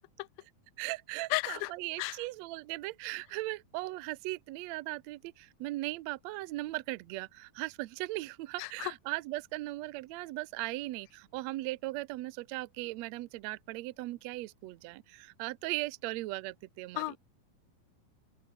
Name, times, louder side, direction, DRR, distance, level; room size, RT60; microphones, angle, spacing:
voice 1, 0.8-17.2, right 19 dB, 90° right, 1.5 m, -38 dB
voice 2, 1.3-1.7 2.0-2.2 8.6-8.9 17.0-17.2, left 22 dB, 90° left, 2.4 m, -33 dB
open air
omnidirectional pair, 4.1 m